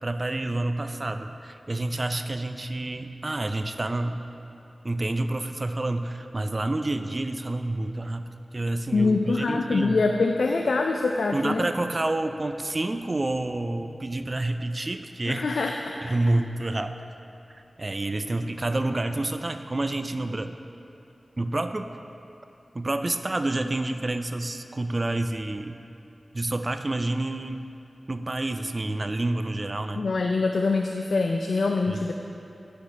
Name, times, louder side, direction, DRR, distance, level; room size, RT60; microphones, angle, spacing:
voice 1, 0.0-4.2 4.8-10.0 11.3-15.5 16.0-17.0 17.5-20.5 21.4-21.9 22.7-25.8 26.3-27.7 28.1-30.1 31.9-32.0, right 2 dB, 40° right, 8 dB, 0.4 m, -28 dB
voice 2, 8.9-11.7 15.3-16.0 30.0-32.1, left 3 dB, 90° left, 3 dB, 0.4 m, -24 dB
10.5 x 5.2 x 5.3 m, 2.7 s
wide cardioid pair, 70°, 0 cm